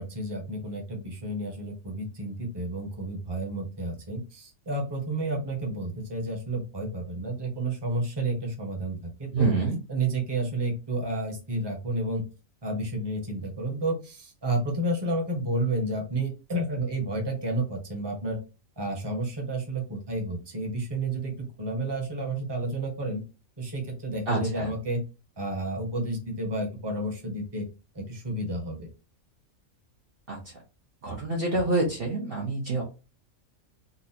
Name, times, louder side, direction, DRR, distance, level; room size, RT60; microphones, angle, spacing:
voice 1, 0.0-9.5 9.9-12.2 12.6-18.4 18.8-23.2 23.6-25.0 25.4-27.7 27.9-28.9, right 2 dB, 20° right, 1 dB, 1.0 m, -31 dB
voice 2, 9.3-9.8 24.3-24.7 30.3-30.4 31.0-32.8, right 3 dB, 50° right, -2 dB, 0.9 m, -26 dB
4.0 x 2.4 x 2.8 m, 0.31 s
omnidirectional pair, 1.4 m